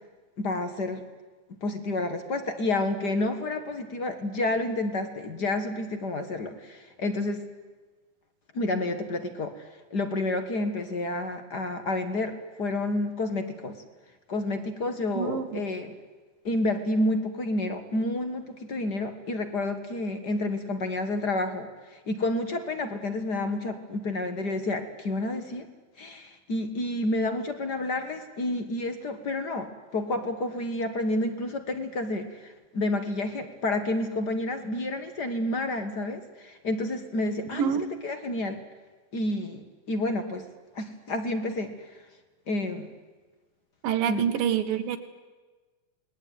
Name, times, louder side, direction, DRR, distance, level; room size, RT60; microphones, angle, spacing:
voice 1, 0.4-1.0 1.6-7.4 8.5-13.8 14.3-16.0 16.4-25.7 26.0-38.6 39.1-40.5 40.7-41.7 42.5-42.9 44.1-44.2, left 2 dB, 45° left, 8 dB, 1.4 m, -30 dB
voice 2, 15.2-15.6 37.6-37.8 43.8-45.0, right 8 dB, 80° right, 8 dB, 3.2 m, -26 dB
27.5 x 20.5 x 9.4 m, 1.3 s
omnidirectional pair, 4.0 m